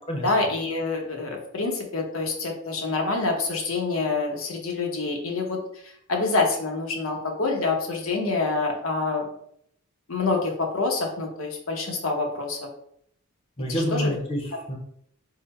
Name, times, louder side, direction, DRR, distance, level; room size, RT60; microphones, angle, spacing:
voice 1, 0.2-5.6 5.8-9.3 10.1-12.7 13.7-14.2, left 3 dB, 80° left, 1 dB, 0.9 m, -26 dB
voice 2, 13.6-14.8, equal, 30° left, 1 dB, 0.8 m, -28 dB
3.8 x 2.2 x 4.3 m, 0.69 s
head